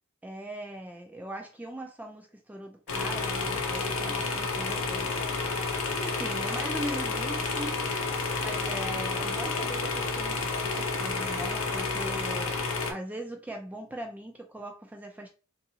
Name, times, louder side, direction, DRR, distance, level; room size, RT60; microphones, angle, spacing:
voice 1, 0.2-7.8 8.1-15.3, right 1 dB, 5° right, 0.4 m, -40 dB
sound 1, 2.9-12.9, left 3 dB, 75° left, 0.7 m, -30 dB
3.8 x 2.5 x 2.7 m
head